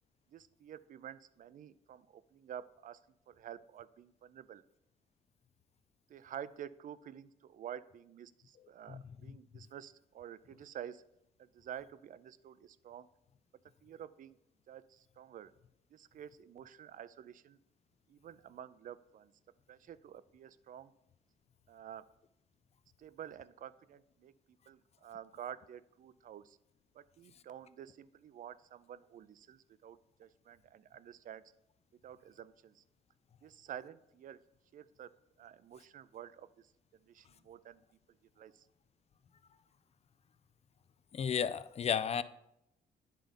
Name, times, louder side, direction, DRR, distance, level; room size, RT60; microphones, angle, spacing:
voice 1, 0.3-3.0 3.3-4.6 6.1-11.0 11.4-13.1 13.8-14.4 14.7-15.5 15.9-17.6 18.1-19.3 19.7-20.9 21.7-22.1 23.0-24.3 24.7-26.6 26.9-31.4 32.0-32.8 33.4-34.4 34.7-35.1 35.4-37.8 38.4-38.7, right 9 dB, 55° right, 0.4 m, -50 dB
voice 2, 41.1-42.2, left 7 dB, 40° left, 0.4 m, -33 dB
9.1 x 3.8 x 5.1 m
cardioid pair, 90°, 17 cm